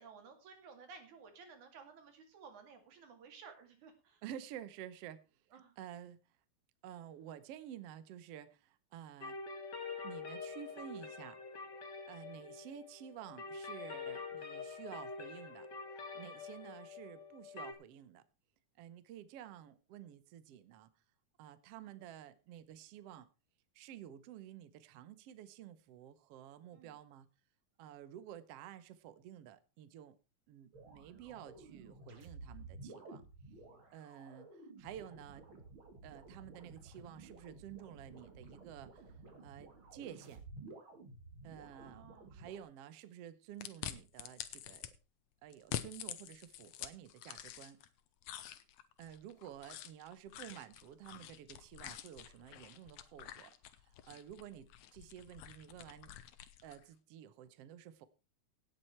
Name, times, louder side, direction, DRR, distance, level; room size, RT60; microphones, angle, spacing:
voice 1, 0.0-4.2 5.5-5.7 26.7-27.0 41.8-42.5 50.3-50.4, right 5 dB, 90° right, 3.8 m, -56 dB
voice 2, 4.2-6.2 6.8-9.4 10.0-11.4 12.1-15.7 16.1-18.2 18.8-20.9 21.4-23.3 23.8-27.3 27.8-30.2 30.5-33.2 33.9-35.5 36.0-39.1 39.4-40.4 41.4-44.9 45.4-47.8 49.0-53.5 53.8-56.1 56.6-58.1, right 10 dB, 65° right, 1.8 m, -51 dB
sound 1, 9.2-17.7, left 4 dB, 40° left, 2.1 m, -46 dB
sound 2, 30.7-42.6, right 3 dB, 45° right, 3.2 m, -54 dB
sound 3, 43.6-44.9 45.5-47.9 48.2-56.8, left 11 dB, 80° left, 2.3 m, -47 dB
17.5 x 7.8 x 4.4 m
omnidirectional pair, 3.3 m